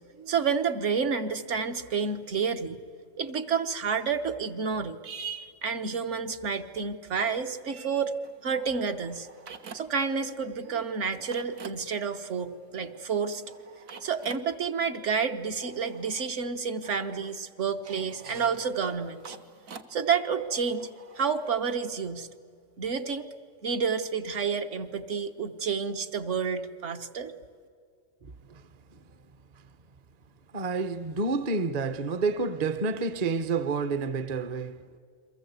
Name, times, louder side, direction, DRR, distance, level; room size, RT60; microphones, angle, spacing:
voice 1, 0.2-2.8 3.2-8.1 8.4-9.3 9.7-13.4 14.0-19.4 19.9-20.9 21.1-22.3 22.8-23.3 23.6-27.3, right 6 dB, 60° right, 1.4 m, -30 dB
sound 1, 7.7-10.1 10.4-21.7, right 5 dB, 85° right, 1.6 m, -50 dB
voice 2, 28.2-29.0 29.5-29.6 30.5-35.0, right 4 dB, 35° right, 0.7 m, -30 dB
29.5 x 23.5 x 8.1 m
omnidirectional pair, 1.4 m